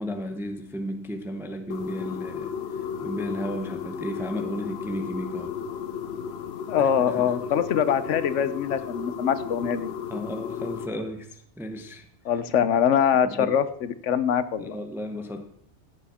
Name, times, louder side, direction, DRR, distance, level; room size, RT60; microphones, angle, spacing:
voice 1, 0.0-5.6 6.8-7.6 10.1-12.1 13.2-13.5 14.6-15.4, equal, ahead, 7 dB, 0.7 m, -34 dB
sound 1, 1.7-10.9, left 7 dB, 65° left, 0.9 m, -34 dB
voice 2, 6.7-9.9 12.3-14.7, left 8 dB, 90° left, 14 dB, 1.1 m, -23 dB
15.0 x 7.1 x 4.3 m, 0.69 s
omnidirectional pair, 1.2 m